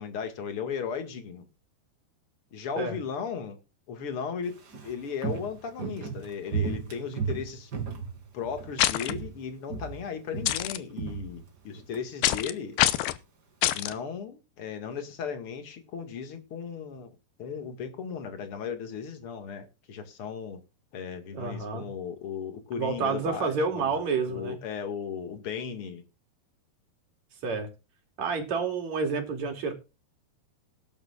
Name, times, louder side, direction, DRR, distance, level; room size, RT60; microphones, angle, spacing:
voice 1, 0.0-1.5 2.5-3.6 3.9-4.6 4.8-7.7 8.3-12.8 13.7-17.1 17.4-20.6 20.9-24.0 24.3-26.0, left 6 dB, 40° left, 2.4 m, -36 dB
Walk footsteps, 4.4-8.8 9.0-9.4 9.7-12.0 12.3-12.4, right 5 dB, 30° right, 2.5 m, -35 dB
sound 1, 8.8-9.1 10.5-10.8 12.2-12.5 12.8-13.2 13.6-13.9, left 14 dB, 80° left, 2.6 m, -24 dB
voice 2, 21.3-21.9 22.8-24.6 27.4-27.7 28.2-29.7, right 4 dB, 50° right, 3.8 m, -29 dB
19.0 x 10.5 x 2.5 m
omnidirectional pair, 4.6 m